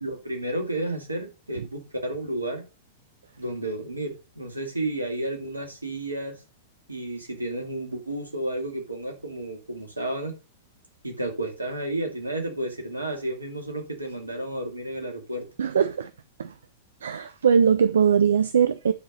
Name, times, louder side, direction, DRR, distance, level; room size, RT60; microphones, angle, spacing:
voice 1, 0.0-2.6 3.4-6.3 6.9-10.3 11.0-15.5, right 1 dB, 85° right, 2.6 m, -32 dB
voice 2, 15.6-16.1 16.4-16.5 17.0-18.9, right 7 dB, 65° right, 0.6 m, -21 dB
10.0 x 4.8 x 5.4 m
figure-of-eight pair, 100°, 0 cm